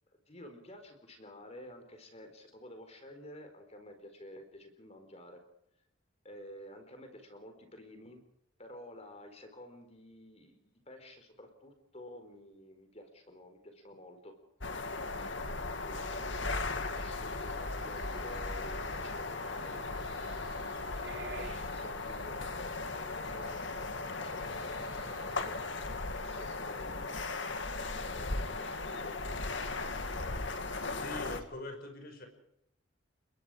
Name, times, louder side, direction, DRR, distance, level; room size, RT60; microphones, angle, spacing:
voice 1, 0.3-5.4 6.2-8.2 8.6-14.4 14.8-25.5 26.2-29.2 29.6-30.6, left 1 dB, 30° left, 6 dB, 4.3 m, -52 dB
sound 1, 14.6-31.4, left 3 dB, 65° left, 2.3 m, -37 dB
sound 2, 15.9-26.0, right 1 dB, 60° right, 4.2 m, -51 dB
voice 2, 31.0-32.3, left 2 dB, 50° left, 5 dB, 5.7 m, -43 dB
29.5 x 22.0 x 5.0 m, 0.78 s
head